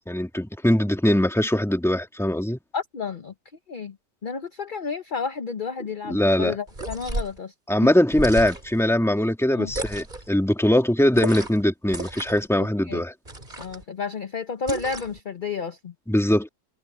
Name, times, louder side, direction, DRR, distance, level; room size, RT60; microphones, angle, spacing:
voice 1, 0.1-2.6 6.1-6.6 7.7-13.1 16.1-16.5, left 1 dB, ahead, 1.8 m, -21 dB
voice 2, 2.7-3.3 3.7-4.0 4.2-7.5 9.5-9.7 12.9-13.0 13.6-15.9, left 5 dB, 40° left, 0.8 m, -31 dB
sound 1, 6.7-7.4 8.1-8.8 9.7-10.3 11.1-11.6 11.9-12.5 13.3-13.8 14.7-15.2, right 2 dB, 25° right, 3.3 m, -32 dB
omnidirectional pair, 1.9 m